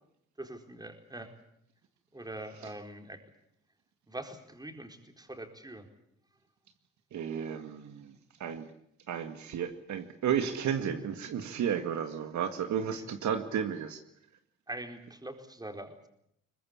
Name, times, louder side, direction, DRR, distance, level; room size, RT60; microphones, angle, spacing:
voice 1, 0.4-1.3 2.1-3.2 4.1-5.9 12.9-13.1 14.7-16.0, right 1 dB, 15° right, 5 dB, 4.4 m, -43 dB
voice 2, 7.1-8.1 8.4-8.7 9.1-14.0, right 8 dB, 70° right, 8 dB, 2.0 m, -33 dB
23.0 x 20.5 x 8.8 m, 0.75 s
cardioid pair, 90°, 30 cm